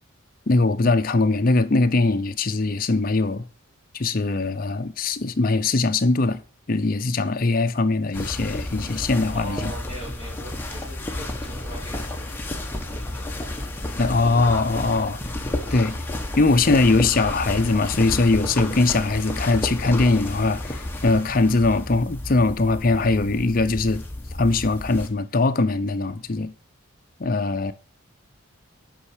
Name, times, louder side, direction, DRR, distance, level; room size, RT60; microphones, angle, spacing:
voice 1, 0.5-3.4 3.9-6.4 6.7-9.7 14.0-15.2 15.7-16.0 16.4-24.0 24.4-26.5 27.2-27.7, left 3 dB, 40° left, 0.6 m, -21 dB
sound 1, 8.1-25.1, left 1 dB, 10° left, 1.0 m, -31 dB
voice 2, 9.3-13.5 15.8-16.0, right 1 dB, 25° right, 2.3 m, -41 dB
8.6 x 5.6 x 4.9 m
head